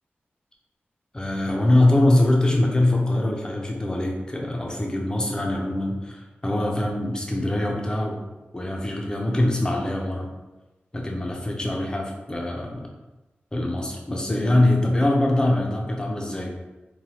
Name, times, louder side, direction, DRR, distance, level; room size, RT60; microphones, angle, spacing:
voice 1, 1.1-8.2 8.5-10.3 10.9-12.8 13.5-16.5, left 1 dB, 20° left, 0 dB, 0.5 m, -23 dB
3.1 x 2.2 x 2.8 m, 1.1 s
wide cardioid pair, 80°, 4 cm